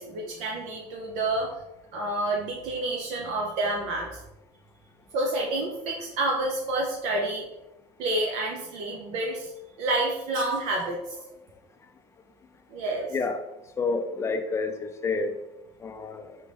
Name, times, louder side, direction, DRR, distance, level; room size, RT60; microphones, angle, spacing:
voice 1, 0.0-1.5 1.9-4.2 5.1-7.5 8.0-9.5 9.8-11.3 12.7-13.1, right 2 dB, 70° right, -1 dB, 0.7 m, -29 dB
voice 2, 13.1-13.4 13.8-15.3 15.8-16.4, left 4 dB, 20° left, 7 dB, 0.4 m, -29 dB
4.0 x 3.4 x 3.1 m, 0.96 s
cardioid pair, 125°, 13 cm